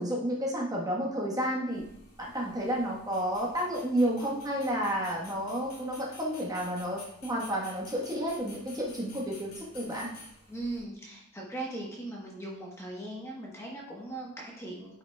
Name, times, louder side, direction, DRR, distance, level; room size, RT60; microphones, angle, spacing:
voice 1, 0.0-1.8 2.2-10.1, equal, 15° right, -3 dB, 1.1 m, -31 dB
sound 1, 1.7-10.8, left 2 dB, 75° left, 2.2 m, -51 dB
voice 2, 10.5-15.0, right 2 dB, 10° left, -3 dB, 1.0 m, -39 dB
9.1 x 5.6 x 2.2 m, 0.73 s
head